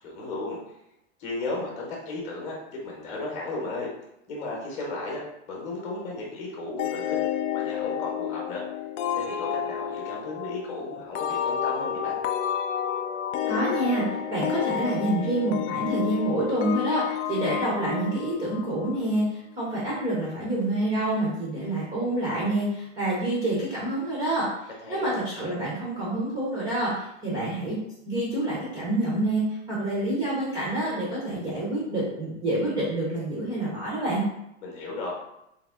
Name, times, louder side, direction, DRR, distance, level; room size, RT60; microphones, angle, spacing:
voice 1, 0.0-0.6 1.2-3.9 4.3-5.2 5.5-7.2 7.5-8.6 9.1-12.2 24.8-25.2 34.6-35.1, left 2 dB, 20° left, -2 dB, 0.8 m, -34 dB
sound 1, 6.8-19.2, left 10 dB, 90° left, 0.5 m, -30 dB
voice 2, 13.5-24.5 24.9-27.8 28.1-34.2, right 1 dB, 10° right, -6 dB, 0.4 m, -27 dB
3.5 x 2.8 x 3.5 m, 0.84 s
supercardioid pair, 170°, 35 cm